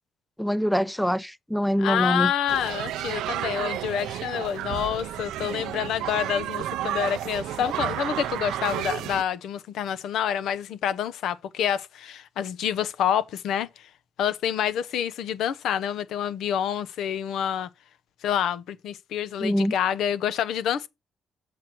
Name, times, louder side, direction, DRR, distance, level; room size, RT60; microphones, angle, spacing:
voice 1, 0.4-2.3 19.4-19.7, equal, 5° left, 0.4 m, -24 dB
voice 2, 1.8-13.9 14.2-17.7 18.2-20.9, left 9 dB, 80° left, 0.6 m, -27 dB
sound 1, 2.5-9.2, right 13 dB, 90° right, 0.5 m, -31 dB
7.6 x 6.0 x 4.4 m
cardioid pair, 90°, 0 cm